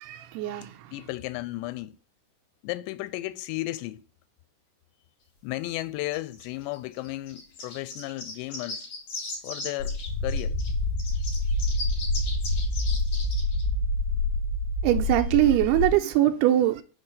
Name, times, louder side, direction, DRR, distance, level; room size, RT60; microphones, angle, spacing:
voice 1, 0.0-0.9 14.8-16.8, right 13 dB, 80° right, 2.6 m, -22 dB
voice 2, 0.9-2.0 2.6-4.0 5.4-8.9 9.4-10.6, left 17 dB, 90° left, 2.8 m, -34 dB
sound 1, 6.1-10.7 11.0-13.6, left 3 dB, 45° left, 3.3 m, -38 dB
sound 2, 9.8-15.9, left 2 dB, 70° left, 2.8 m, -27 dB
6.1 x 4.5 x 6.5 m
omnidirectional pair, 4.9 m